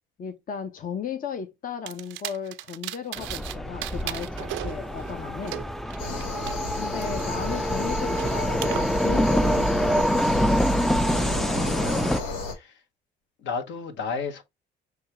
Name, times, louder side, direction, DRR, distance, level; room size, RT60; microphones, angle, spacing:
voice 1, 0.2-5.6 6.8-10.8, left 7 dB, 45° left, 0.7 m, -35 dB
sound 1, 1.9-3.5 3.8-6.5 7.0-8.8, right 16 dB, 70° right, 0.5 m, -37 dB
sound 2, 3.2-12.2, equal, ahead, 0.3 m, -25 dB
sound 3, 6.0-12.5, left 2 dB, 85° left, 1.2 m, -34 dB
voice 2, 11.8-12.8 13.4-14.4, left 5 dB, 65° left, 1.1 m, -34 dB
6.2 x 2.4 x 2.9 m
supercardioid pair, 70°, 20 cm